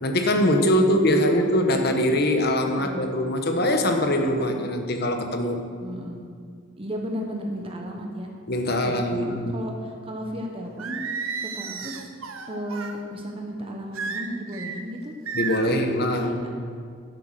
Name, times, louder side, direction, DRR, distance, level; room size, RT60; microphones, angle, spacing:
voice 1, 0.0-5.6 8.5-9.5 15.3-16.5, left 1 dB, 50° left, 4 dB, 1.1 m, -22 dB
voice 2, 0.6-1.5 2.6-3.0 4.5-4.6 5.8-6.2 6.8-8.3 8.8-11.0 11.4-12.1 12.4-15.1 15.7-15.8 16.1-16.5, equal, 25° right, 2 dB, 1.0 m, -34 dB
Singing, 10.8-13.0 13.9-14.8 15.3-15.8, right 5 dB, 75° right, 0.9 m, -32 dB
11.5 x 7.8 x 6.6 m, 2.2 s
head